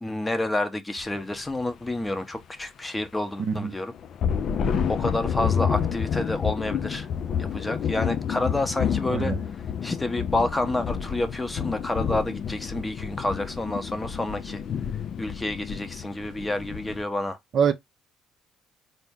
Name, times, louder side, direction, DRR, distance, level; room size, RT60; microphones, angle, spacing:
voice 1, 0.0-3.9 4.9-7.1 7.4-14.6 15.2-17.4, left 2 dB, 15° left, 0.8 m, -29 dB
sound 1, 1.0-1.2 1.5-1.8 3.9-17.0, left 7 dB, 50° left, 0.4 m, -29 dB
voice 2, 3.4-3.7 9.1-9.4 17.5-17.7, right 7 dB, 50° right, 0.5 m, -24 dB
4.2 x 2.1 x 3.5 m
figure-of-eight pair, 50°, 0 cm